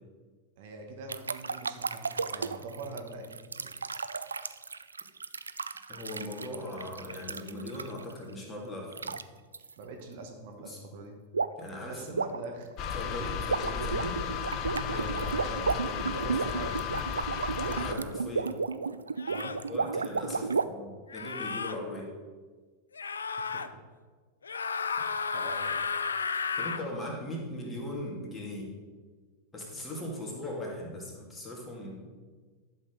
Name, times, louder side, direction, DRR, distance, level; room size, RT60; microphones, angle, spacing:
voice 1, 0.6-3.7 9.8-11.2 11.8-12.7 13.2-13.5 15.1-15.8 16.1-16.8 19.3-19.5 23.4-23.8 25.0-25.8, right 3 dB, 50° right, 3 dB, 1.1 m, -43 dB
sound 1, 1.1-8.1 8.9-9.2 9.5-9.7 11.3-11.7 12.0-20.6, right 4 dB, 75° right, 0.3 m, -33 dB
voice 2, 5.9-9.2 10.7-10.8 11.6-12.1 12.9-14.2 14.9-15.3 15.6-16.6 17.6-18.6 19.7-22.1 26.6-28.7 29.5-32.1, left 1 dB, 15° left, -2 dB, 2.4 m, -39 dB
sound 2, 12.8-17.9, left 7 dB, 35° left, 0.7 m, -34 dB
sound 3, 17.8-18.0 19.2-19.6 21.1-21.8 22.9-23.7 24.4-26.9, left 5 dB, 70° left, 0.4 m, -33 dB
11.5 x 6.7 x 4.0 m, 1.5 s
figure-of-eight pair, 90°, 0 cm